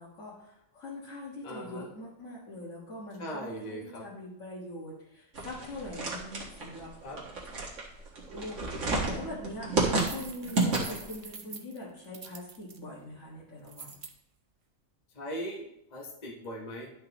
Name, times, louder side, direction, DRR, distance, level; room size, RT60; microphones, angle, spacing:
voice 1, 0.0-6.9 8.3-14.0, left 1 dB, 70° left, -8 dB, 2.0 m, -43 dB
voice 2, 1.4-1.8 3.2-4.0 7.0-7.2 10.6-10.8 15.1-16.9, equal, 35° left, -2 dB, 1.2 m, -39 dB
sound 1, 5.3-11.2, right 3 dB, 65° right, 1.9 m, -31 dB
sound 2, 9.9-12.8 13.6-14.1, right 4 dB, 40° right, 0.4 m, -45 dB
11.5 x 5.6 x 3.0 m, 0.80 s
omnidirectional pair, 1.4 m